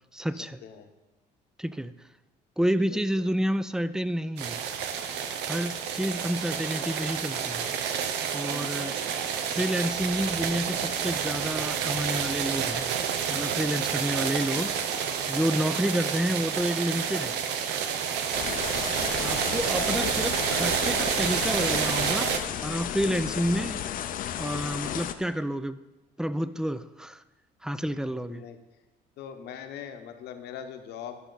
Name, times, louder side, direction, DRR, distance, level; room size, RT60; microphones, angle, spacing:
voice 1, 0.1-0.6 1.6-1.9 2.6-4.6 5.5-8.0 8.3-8.9 9.4-13.0 13.3-17.4 18.9-23.8 24.4-25.8 26.2-27.2 27.6-28.4, equal, 5° right, 15 dB, 0.3 m, -30 dB
voice 2, 2.8-3.2 19.2-20.2 28.1-28.6 29.2-31.2, left 8 dB, 75° left, 7 dB, 0.9 m, -42 dB
sound 1, 4.4-22.4, right 7 dB, 85° right, 0.7 m, -29 dB
sound 2, 18.3-25.1, left 10 dB, 55° left, 0.5 m, -33 dB
12.5 x 5.8 x 3.9 m, 1.1 s
cardioid pair, 110°, 17 cm